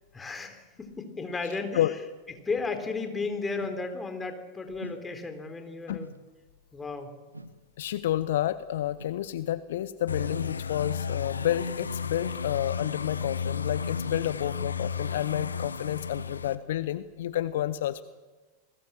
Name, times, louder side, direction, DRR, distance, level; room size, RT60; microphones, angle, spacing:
voice 1, 0.1-1.8 2.5-6.1 6.7-7.1, left 4 dB, 15° left, 6 dB, 3.6 m, -34 dB
sound 1, 3.6-3.9 4.8-5.1 6.0-6.3 7.3-7.6 9.0-9.2 10.1-10.4 11.3-11.6 12.7-13.0 13.8-14.1 14.5-14.8 15.3-15.6 16.1-16.4, right 1 dB, 85° right, 1.2 m, -46 dB
voice 2, 7.8-18.0, left 12 dB, 55° left, 15 dB, 0.8 m, -30 dB
sound 2, 10.1-16.5, left 6 dB, 75° left, 1.1 m, -33 dB
29.0 x 20.5 x 7.5 m, 1.3 s
figure-of-eight pair, 90°, 0 cm